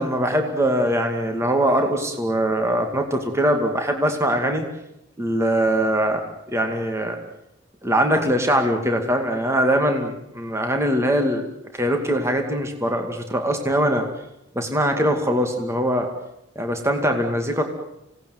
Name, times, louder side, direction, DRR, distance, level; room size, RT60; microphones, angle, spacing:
voice 1, 0.0-4.7 5.2-6.2 6.5-7.2 7.8-14.0 14.6-16.1 16.6-17.6, equal, 15° right, 4 dB, 2.3 m, -22 dB
27.0 x 18.5 x 9.4 m, 0.87 s
head